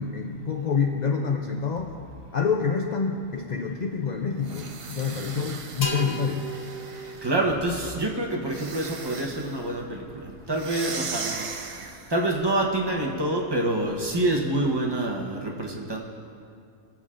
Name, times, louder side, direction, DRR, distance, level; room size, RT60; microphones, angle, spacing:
voice 1, 0.0-1.9 2.3-6.5, left 5 dB, 55° left, 4 dB, 0.5 m, -27 dB
sound 1, 4.4-7.4 8.5-9.6 10.5-12.2, right 4 dB, 60° right, 0.3 m, -38 dB
sound 2, 5.8-9.4, equal, 85° left, 1.5 m, -37 dB
voice 2, 7.2-10.0 10.5-11.4 12.1-16.0, right 1 dB, 20° right, -1 dB, 0.9 m, -26 dB
21.0 x 7.2 x 2.5 m, 2.5 s
omnidirectional pair, 1.3 m